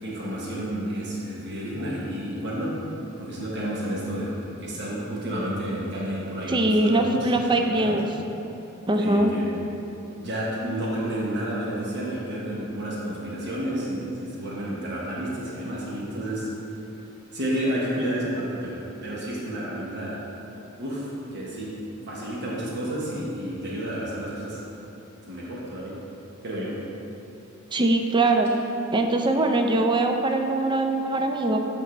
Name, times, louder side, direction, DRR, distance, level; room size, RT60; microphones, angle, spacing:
voice 1, 0.0-2.8 3.2-8.0 9.0-9.6 10.2-16.5 17.3-20.3 20.8-24.6 25.2-26.0 26.4-26.9, right 1 dB, 55° right, -5 dB, 1.1 m, -30 dB
voice 2, 6.5-8.0 8.9-9.3 27.7-28.5 28.9-31.6, right 2 dB, 20° right, 4 dB, 0.4 m, -22 dB
8.3 x 5.3 x 3.2 m, 3.0 s
head